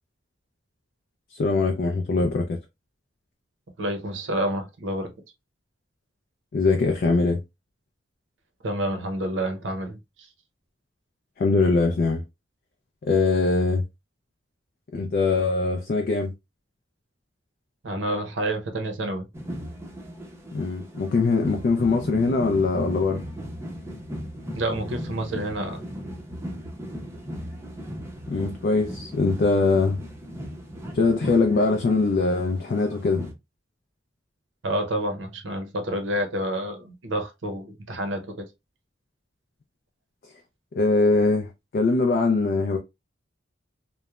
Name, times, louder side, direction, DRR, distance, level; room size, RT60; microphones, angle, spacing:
voice 1, 1.3-2.6 6.5-7.4 11.4-12.2 13.0-13.8 14.9-16.3 20.5-23.2 28.3-30.0 30.9-33.3 40.8-42.8, left 3 dB, 50° left, 0.4 m, -22 dB
voice 2, 3.8-5.1 8.6-10.3 17.8-19.3 24.5-25.8 34.6-38.5, right 1 dB, 75° right, 0.7 m, -29 dB
sound 1, 19.3-33.3, equal, 15° right, 0.5 m, -37 dB
3.0 x 2.0 x 2.3 m
head